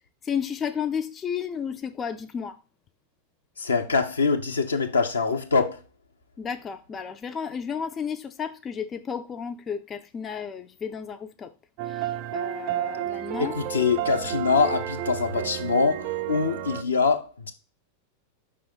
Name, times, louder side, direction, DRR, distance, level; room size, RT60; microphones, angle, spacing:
voice 1, 0.2-2.5 6.4-11.5 12.0-13.5, left 7 dB, 25° left, 0.4 m, -32 dB
voice 2, 3.6-5.8 13.4-17.5, left 4 dB, 75° left, 0.7 m, -24 dB
Chonology of love, 11.8-16.8, right 12 dB, 45° right, 0.4 m, -31 dB
5.4 x 3.4 x 5.1 m
figure-of-eight pair, 90°, 0 cm